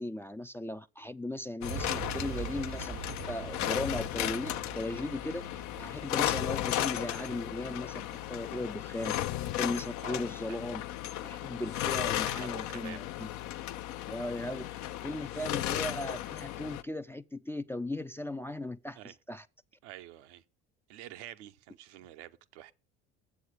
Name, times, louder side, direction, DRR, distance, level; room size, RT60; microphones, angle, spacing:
voice 1, 0.0-9.2 9.5-10.8 11.2-13.3 14.1-19.5, left 1 dB, 5° left, 0.4 m, -37 dB
sound 1, 1.6-16.8, left 13 dB, 55° left, 0.6 m, -35 dB
sound 2, 1.7-9.6, right 12 dB, 40° right, 0.6 m, -45 dB
voice 2, 10.0-10.6 12.2-13.0 19.0-19.1 19.8-20.4 20.9-22.7, right 13 dB, 75° right, 0.7 m, -48 dB
7.8 x 7.0 x 6.3 m
hypercardioid pair, 60°, 35 cm